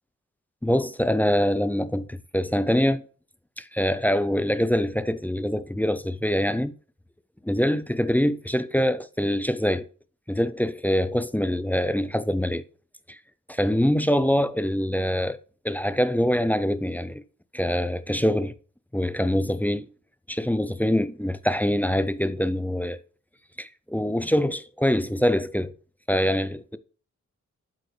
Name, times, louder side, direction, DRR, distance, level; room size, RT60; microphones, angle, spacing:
voice 1, 0.6-3.0 3.6-6.7 7.4-9.9 10.3-12.6 13.1-13.2 13.5-15.4 15.6-17.2 17.5-18.5 18.9-19.9 20.3-23.0 23.6-25.7 26.1-26.8, equal, 5° left, 0.4 m, -24 dB
12.0 x 4.4 x 3.2 m
wide cardioid pair, 100°, 30 cm